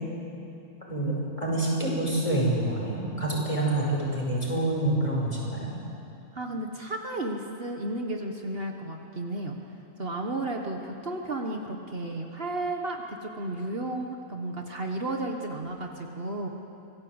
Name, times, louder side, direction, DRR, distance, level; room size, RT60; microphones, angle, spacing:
voice 1, 0.9-5.7, right 1 dB, 25° left, -4 dB, 5.8 m, -27 dB
voice 2, 6.3-9.6 10.0-16.5, right 2 dB, 50° right, 2 dB, 1.6 m, -33 dB
25.0 x 17.5 x 8.0 m, 2.8 s
omnidirectional pair, 1.3 m